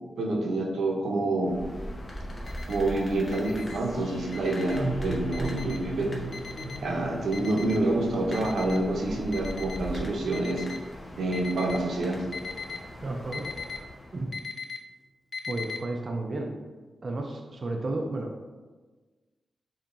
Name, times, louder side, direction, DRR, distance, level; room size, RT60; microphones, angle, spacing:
voice 1, 0.2-1.6 2.7-6.1 6.8-10.6 11.2-12.2, right 2 dB, 90° right, 0 dB, 0.7 m, -27 dB
sound 1, 1.4-14.4, equal, 25° left, 0.7 m, -40 dB
Alarm, 2.4-2.8 3.3-3.8 4.3-4.8 5.3-5.8 6.3-6.8 7.3-7.8 8.3-8.8 9.3-9.8 10.3-10.8 11.3-11.8 12.3-12.8 13.3-13.8 14.3-14.8 15.3-15.8, left 5 dB, 55° left, 0.4 m, -38 dB
sound 2, 2.5-12.5, right 2 dB, 75° left, 1.4 m, -39 dB
voice 2, 13.0-13.5 14.1-14.3 15.5-16.5 17.0-18.5, right 2 dB, 35° right, 2 dB, 0.4 m, -32 dB
6.9 x 2.8 x 2.5 m, 1.3 s
wide cardioid pair, 160°, 0 cm